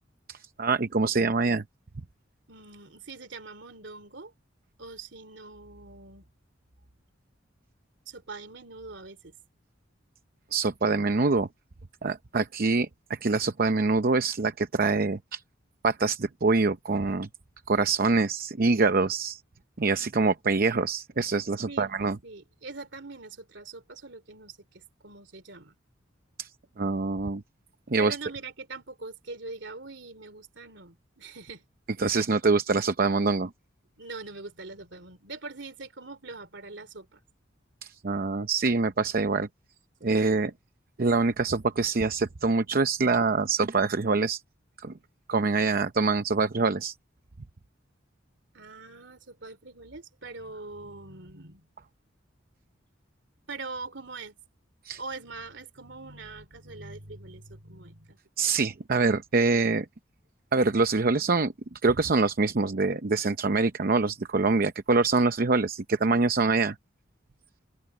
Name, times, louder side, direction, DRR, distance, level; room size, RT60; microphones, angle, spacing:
voice 1, 0.3-1.6 10.5-11.5 12.0-15.4 15.8-17.3 17.7-19.4 19.8-22.2 26.4-26.5 26.8-27.4 27.9-28.2 32.0-33.5 37.8-39.5 40.0-40.5 41.0-44.4 44.8-44.9 45.3-46.9 54.8-55.0 58.4-59.9 60.5-66.7, right 3 dB, 50° right, 0.7 m, -25 dB
voice 2, 2.5-4.3 4.8-6.2 8.1-9.3 21.7-25.7 28.0-31.7 34.0-37.2 48.5-51.7 53.5-54.3 55.0-58.5, right 3 dB, 65° right, 3.4 m, -43 dB
open air
head